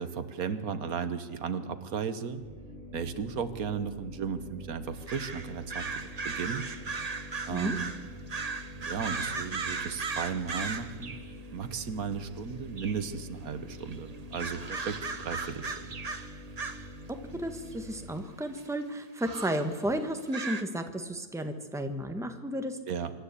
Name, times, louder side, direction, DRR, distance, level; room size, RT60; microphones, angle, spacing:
voice 1, 0.0-2.4 2.9-6.7 7.5-7.9 8.8-11.1 11.5-16.0 22.9-23.1, right 6 dB, 85° right, 11 dB, 1.6 m, -35 dB
sound 1, 2.4-18.1, equal, 25° left, 6.6 m, -46 dB
sound 2, 5.1-11.3 12.4-12.5 12.8-13.1 13.8-14.0 14.3-17.1 17.7-17.8 18.6-18.7 19.2-19.7 20.3-20.6, right 4 dB, 30° right, 0.9 m, -37 dB
voice 2, 17.3-22.8, right 1 dB, ahead, 6 dB, 1.3 m, -33 dB
25.0 x 12.5 x 8.4 m, 1.4 s
omnidirectional pair, 1.5 m